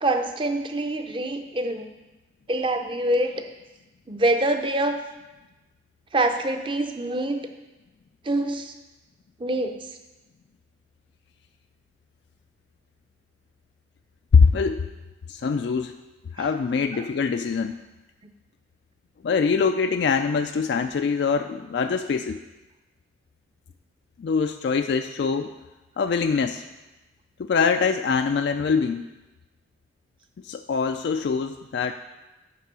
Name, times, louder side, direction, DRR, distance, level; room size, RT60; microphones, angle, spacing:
voice 1, 0.0-1.9 2.5-3.4 4.1-5.0 6.1-7.4 8.2-8.7 9.4-9.7 16.4-16.5, right 1 dB, 25° right, 5 dB, 0.6 m, -25 dB
voice 2, 14.3-14.8 15.3-16.0 16.3-17.8 19.2-22.4 24.2-25.5 26.0-26.6 27.4-29.1 30.4-31.9, left 5 dB, 60° left, 7 dB, 0.3 m, -23 dB
9.6 x 3.7 x 6.7 m, 1.1 s
head